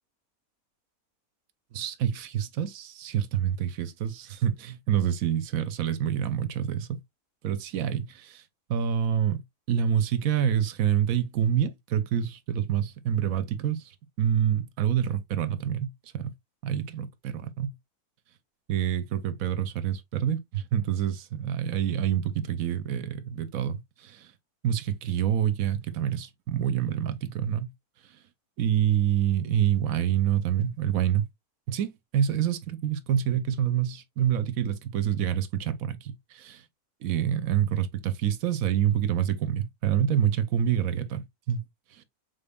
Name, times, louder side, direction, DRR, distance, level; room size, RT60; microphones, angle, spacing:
voice 1, 1.7-7.0 7.4-8.4 8.7-9.4 9.7-16.3 16.6-17.7 18.7-24.3 24.6-27.7 28.6-31.2 31.7-36.6 37.0-41.6 41.9-42.0, right 9 dB, 75° right, 1.0 m, -27 dB
5.2 x 3.9 x 2.2 m
omnidirectional pair, 1.6 m